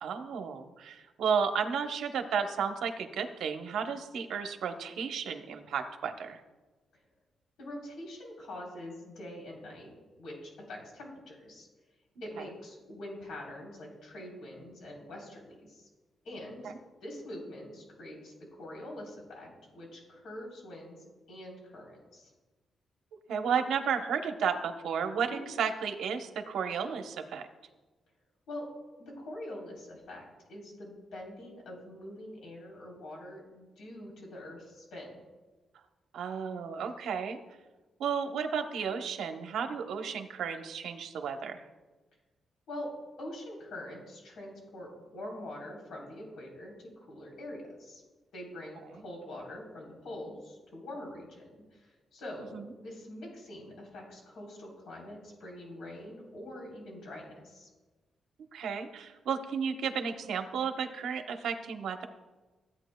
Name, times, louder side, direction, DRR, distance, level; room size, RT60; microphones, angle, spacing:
voice 1, 0.0-6.4 12.4-12.5 16.6-16.8 23.3-27.4 36.1-37.4 38.0-41.6 52.5-52.6 58.5-62.1, right 6 dB, 85° right, 5 dB, 0.8 m, -33 dB
voice 2, 7.6-9.9 10.2-11.7 12.2-15.9 16.2-16.7 17.0-22.3 25.2-25.4 28.5-28.7 29.0-35.1 42.7-42.9 43.2-48.0 48.3-57.7, left 1 dB, 85° left, -1 dB, 3.5 m, -44 dB
15.5 x 8.7 x 2.2 m, 1.2 s
wide cardioid pair, 155°, 0 cm